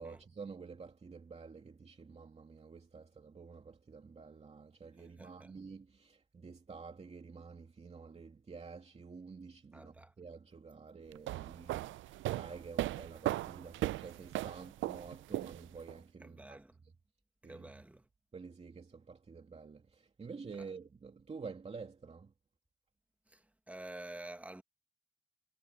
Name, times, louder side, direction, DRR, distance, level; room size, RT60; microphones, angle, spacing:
voice 1, 0.0-16.6 17.4-17.7 18.3-22.3, right 5 dB, 30° right, 2.6 m, -49 dB
voice 2, 5.0-5.5 9.7-10.1 16.2-16.8 17.4-18.1 20.5-20.7 23.3-24.6, right 1 dB, 5° right, 1.8 m, -50 dB
sound 1, 11.1-16.0, right 16 dB, 75° right, 0.5 m, -37 dB
cardioid pair, 90°, 20 cm